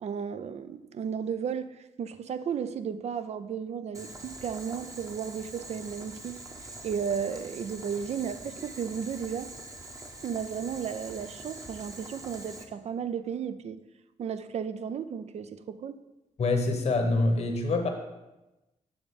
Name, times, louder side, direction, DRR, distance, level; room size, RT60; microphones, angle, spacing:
voice 1, 0.0-6.4 6.8-9.5 10.2-13.8 14.2-16.0, right 7 dB, 55° right, 0.4 m, -34 dB
Boiling, 3.9-12.6, right 2 dB, 25° right, 0.9 m, -44 dB
voice 2, 16.4-17.9, left 2 dB, 55° left, 1.0 m, -25 dB
7.0 x 3.6 x 5.2 m
cardioid pair, 60°, 13 cm